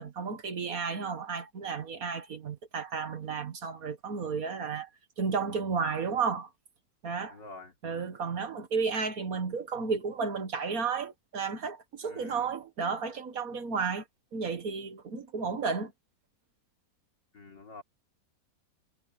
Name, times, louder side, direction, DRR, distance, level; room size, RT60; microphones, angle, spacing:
voice 1, 0.0-4.9 5.2-6.5 7.0-7.4 7.8-14.0 14.3-15.9, right 5 dB, 55° right, 1.8 m, -32 dB
voice 2, 7.3-7.7 12.0-12.5 17.3-17.8, left 3 dB, 85° left, 4.3 m, -47 dB
omnidirectional pair, 1.9 m